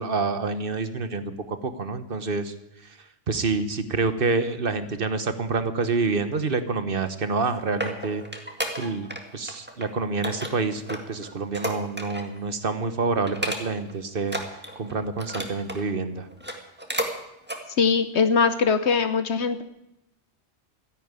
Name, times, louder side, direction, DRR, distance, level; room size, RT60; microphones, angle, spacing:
voice 1, 0.0-2.5 3.3-8.2 8.8-14.4 14.7-16.3, right 4 dB, 50° right, 10 dB, 1.3 m, -27 dB
sound 1, 7.2-9.2 9.5-9.9 10.2-12.4 12.7-12.9 13.3-13.9 14.2-15.8 16.3-17.1 17.4-17.6 18.1-18.2, right 1 dB, 10° right, 1.9 m, -32 dB
voice 2, 17.8-19.6, left 5 dB, 70° left, 10 dB, 1.2 m, -21 dB
13.5 x 10.5 x 9.0 m, 0.85 s
omnidirectional pair, 1.2 m